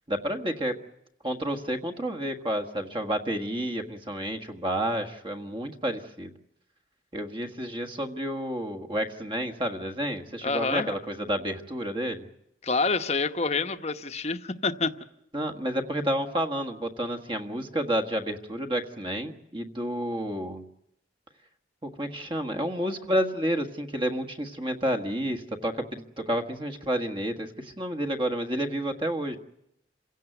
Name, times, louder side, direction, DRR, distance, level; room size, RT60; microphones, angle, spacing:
voice 1, 0.1-0.7 1.2-6.3 7.1-12.2 15.3-20.6 21.8-29.4, equal, 25° right, 1.6 m, -30 dB
voice 2, 10.4-11.0 12.6-14.9, left 4 dB, 35° left, 1.0 m, -27 dB
28.0 x 16.5 x 9.1 m
head